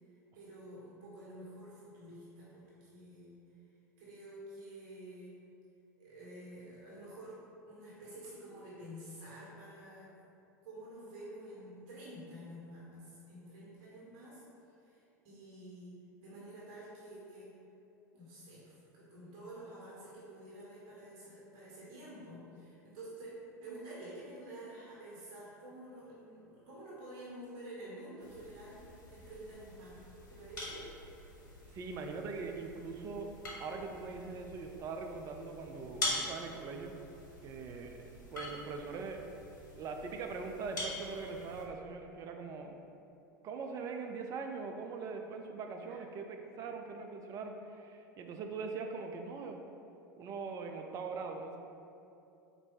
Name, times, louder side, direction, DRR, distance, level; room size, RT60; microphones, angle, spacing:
voice 1, 0.3-3.4 4.0-5.4 6.0-10.1 10.6-14.4 14.8-15.9 16.2-17.5 18.1-30.0 30.3-30.8 37.8-38.2 45.9-46.0, right 1 dB, 50° right, -7 dB, 1.3 m, -49 dB
sound 1, 28.2-41.7, left 2 dB, 70° left, 1.0 m, -44 dB
voice 2, 31.7-33.3 33.6-37.0 37.4-39.4 39.7-42.8 43.4-49.6 50.2-51.6, right 4 dB, 30° right, 4 dB, 0.4 m, -42 dB
4.2 x 2.6 x 4.7 m, 2.7 s
figure-of-eight pair, 80°, 10 cm